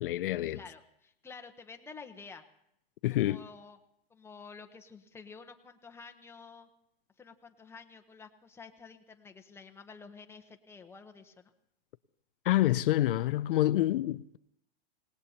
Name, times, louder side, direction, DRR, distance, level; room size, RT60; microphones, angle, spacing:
voice 1, 0.0-0.6 3.0-3.4 12.5-14.4, left 15 dB, 65° left, 0.5 m, -27 dB
voice 2, 0.5-2.5 3.1-3.8 4.1-6.7 7.2-11.5, left 5 dB, 10° left, 1.0 m, -50 dB
26.5 x 18.5 x 2.9 m
hypercardioid pair, 130°, 29 cm